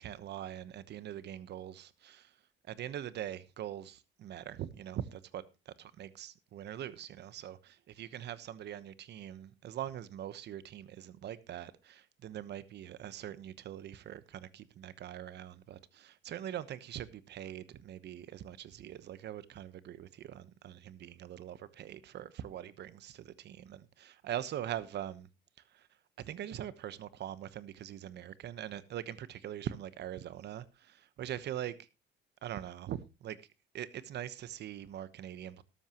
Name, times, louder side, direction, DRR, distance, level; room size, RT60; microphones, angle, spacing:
voice 1, 0.0-2.3 2.7-5.4 5.8-25.3 25.7-25.9 26.2-31.8 32.4-33.4 33.7-35.6, right 11 dB, 60° right, 1.1 m, -42 dB
13.0 x 12.5 x 3.0 m
cardioid pair, 120°, 20 cm